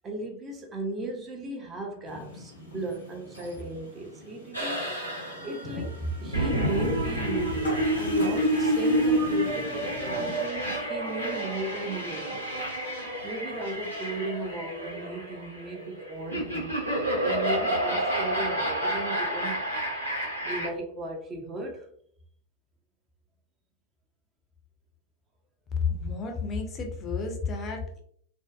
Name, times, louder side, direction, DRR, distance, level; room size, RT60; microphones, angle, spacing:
voice 1, 0.0-4.9 5.4-12.6 13.2-16.7 17.2-19.6 20.4-21.9, right 2 dB, 25° right, 2 dB, 0.5 m, -36 dB
sound 1, 2.0-10.5, left 1 dB, 75° left, 1.0 m, -42 dB
sound 2, 4.5-20.7, right 1 dB, 90° right, 0.7 m, -29 dB
voice 2, 25.8-28.0, left 5 dB, 25° left, 2 dB, 0.5 m, -31 dB
2.6 x 2.1 x 2.3 m, 0.63 s
figure-of-eight pair, 90°, 0 cm